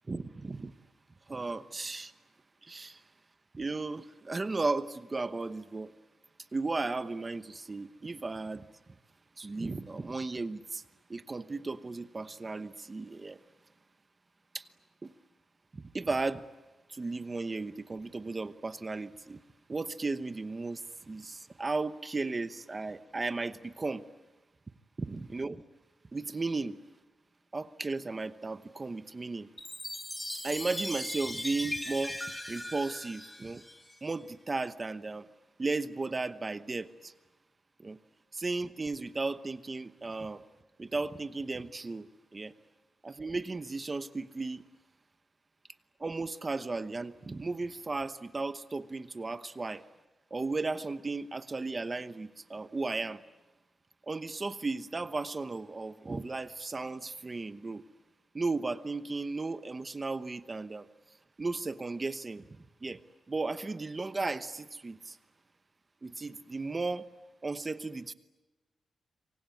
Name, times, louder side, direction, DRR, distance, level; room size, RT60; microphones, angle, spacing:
voice 1, 0.1-0.7 1.3-2.1 2.6-3.0 3.5-5.9 6.5-8.6 9.4-10.8 11.1-13.4 14.5-14.6 15.0-15.1 15.7-16.4 16.9-19.4 19.7-24.0 25.0-25.6 26.1-26.8 27.5-29.5 30.4-32.2 32.5-33.6 34.0-35.3 35.6-37.1 37.8-38.0 38.3-40.4 40.8-42.1 42.3-42.5 43.0-44.6 46.0-49.8 50.3-53.2 54.1-57.8 58.3-60.9 61.4-62.4 62.8-63.0 63.3-65.2 66.0-67.0 67.4-68.1, right 3 dB, 20° right, 12 dB, 1.0 m, -35 dB
Chime, 29.6-34.1, left 1 dB, 5° left, 1.9 m, -39 dB
27.5 x 24.5 x 8.5 m, 1.1 s
wide cardioid pair, 175°, 0 cm